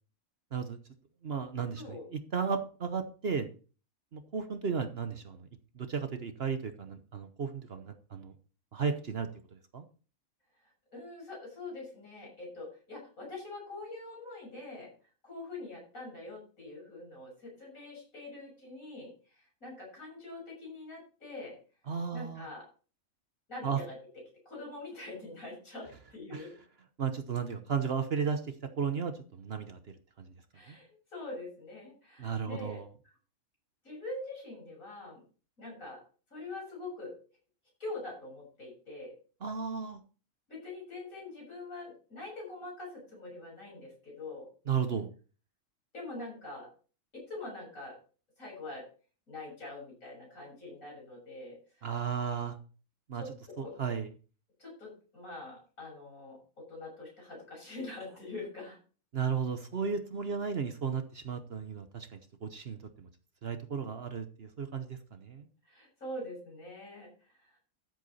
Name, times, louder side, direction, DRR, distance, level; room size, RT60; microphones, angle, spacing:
voice 1, 1.2-3.5 4.1-5.5 5.7-8.3 8.7-9.8 21.9-22.5 23.6-23.8 26.3-26.5 27.0-29.8 30.2-30.3 30.7-30.8 32.2-32.9 39.4-40.0 44.7-45.1 51.8-52.6 53.1-53.2 53.6-54.1 59.1-63.1 63.4-65.5, right 6 dB, 50° right, 9 dB, 1.1 m, -34 dB
voice 2, 10.6-14.9 15.2-21.6 22.1-22.6 23.5-24.0 24.5-26.6 30.5-32.8 33.8-35.2 35.6-36.0 36.3-37.1 37.8-39.1 40.5-44.5 45.9-46.7 47.1-48.0 48.4-48.9 49.3-51.9 53.1-53.7 54.6-58.8 65.6-67.6, left 2 dB, 70° left, -2 dB, 7.2 m, -44 dB
13.0 x 8.1 x 4.2 m, 0.38 s
omnidirectional pair, 1.5 m